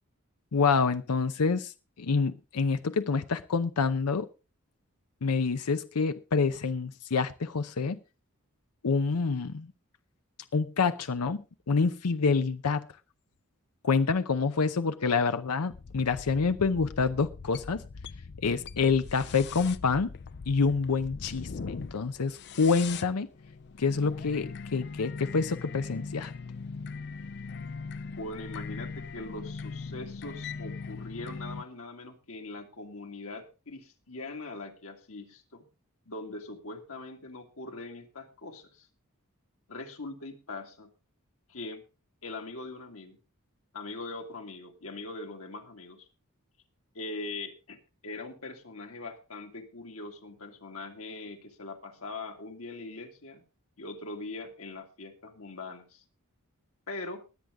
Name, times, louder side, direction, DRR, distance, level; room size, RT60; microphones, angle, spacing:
voice 1, 0.5-4.3 5.2-8.0 8.8-9.7 10.5-12.9 13.8-17.8 18.4-20.1 20.5-23.3 23.8-26.3, left 4 dB, 85° left, 0.7 m, -27 dB
sound 1, 15.7-31.6, left 4 dB, 50° left, 0.5 m, -41 dB
voice 2, 28.1-35.7 36.1-38.9 39.7-40.9 41.5-41.8 42.2-43.2 43.7-46.1 46.9-53.4 53.8-56.0 56.9-57.2, left 2 dB, 65° left, 2.1 m, -41 dB
21.0 x 8.0 x 3.6 m
head